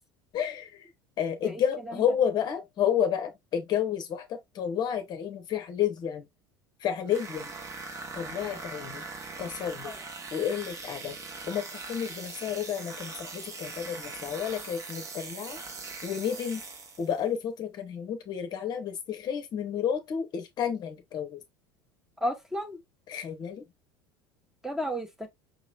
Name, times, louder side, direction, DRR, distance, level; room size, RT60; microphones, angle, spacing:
voice 1, 0.3-0.9 1.2-6.2 6.8-7.5 8.2-9.0 9.4-9.9 10.3-11.2 11.5-15.6 16.0-16.6 17.0-21.4 23.1-23.6, left 8 dB, 40° left, 0.8 m, -31 dB
sound 1, 7.1-17.2, right 3 dB, 30° right, 1.0 m, -41 dB
voice 2, 22.2-22.8 24.6-25.3, equal, 5° right, 0.9 m, -33 dB
5.3 x 3.1 x 2.3 m
figure-of-eight pair, 70°, 11 cm